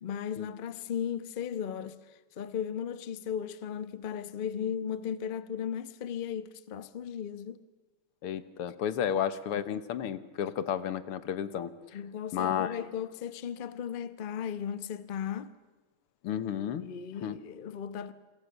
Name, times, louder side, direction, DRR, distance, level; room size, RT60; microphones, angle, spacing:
voice 1, 0.0-7.6 11.9-15.5 16.8-18.1, left 8 dB, 40° left, 0.7 m, -36 dB
voice 2, 8.2-12.0 12.3-12.8 16.2-16.9 17.2-17.4, left 9 dB, 85° left, 2.1 m, -32 dB
28.5 x 23.5 x 6.6 m
omnidirectional pair, 2.4 m